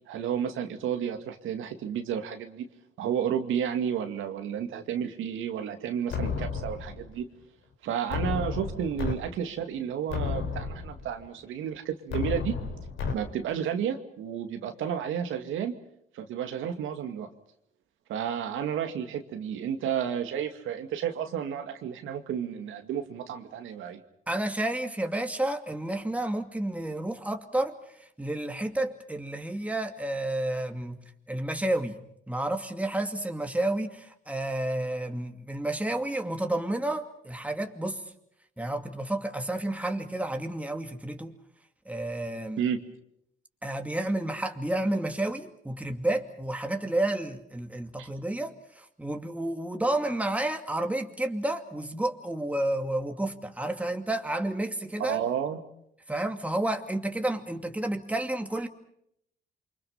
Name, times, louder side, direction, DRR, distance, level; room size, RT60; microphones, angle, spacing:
voice 1, 0.1-2.7 3.0-7.3 7.8-12.6 13.1-15.8 16.1-17.3 18.1-24.0 42.6-42.8 48.0-48.1 55.1-55.6, right 8 dB, 85° right, 6 dB, 2.3 m, -31 dB
sound 1, 6.1-7.1 8.1-9.1 9.6-9.7 10.1-11.1 12.1-13.1, left 5 dB, 85° left, 4.5 m, -32 dB
voice 2, 24.3-38.0 38.6-41.3 41.9-42.6 43.6-55.2 56.1-58.7, right 1 dB, 5° right, 5 dB, 2.5 m, -31 dB
29.0 x 25.0 x 5.7 m, 0.72 s
cardioid pair, 90°, 20 cm